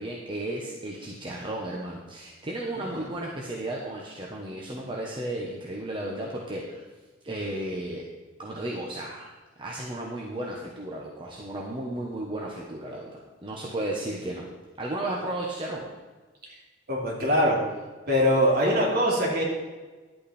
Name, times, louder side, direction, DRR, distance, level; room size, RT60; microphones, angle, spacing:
voice 1, 0.0-6.8 7.2-8.0 8.4-9.3 9.6-13.1 13.4-14.4 14.8-15.9, right 1 dB, 25° right, -3 dB, 1.2 m, -34 dB
voice 2, 16.9-17.6 18.1-19.4, equal, 55° right, -3 dB, 2.9 m, -23 dB
11.0 x 8.3 x 4.3 m, 1.3 s
head